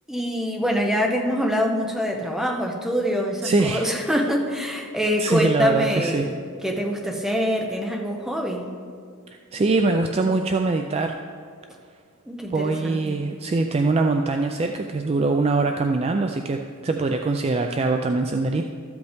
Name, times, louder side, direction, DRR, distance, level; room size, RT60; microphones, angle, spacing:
voice 1, 0.1-6.4 6.6-8.7 12.3-13.2, equal, ahead, 1 dB, 0.8 m, -25 dB
voice 2, 3.4-3.9 5.2-6.3 9.3-11.2 12.5-18.6, right 3 dB, 25° right, 4 dB, 0.3 m, -23 dB
13.0 x 7.9 x 3.5 m, 2.2 s
head